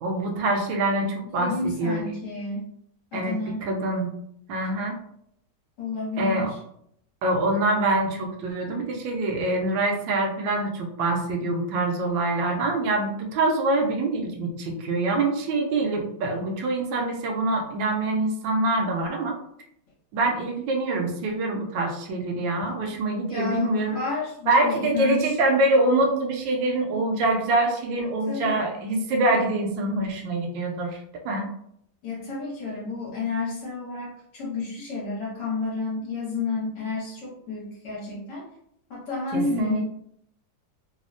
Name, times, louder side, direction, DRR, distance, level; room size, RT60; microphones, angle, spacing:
voice 1, 0.0-2.0 3.1-3.3 3.6-4.1 4.5-5.0 6.2-6.5 7.2-19.3 20.1-24.0 24.5-31.0 31.2-31.5 39.3-39.8, right 2 dB, 85° right, 1 dB, 1.3 m, -25 dB
voice 2, 1.3-2.7 3.1-3.6 5.8-6.6 23.3-25.4 28.3-28.7 32.0-38.5 38.9-39.8, left 4 dB, 70° left, -6 dB, 1.5 m, -30 dB
3.5 x 2.0 x 2.5 m, 0.71 s
omnidirectional pair, 2.0 m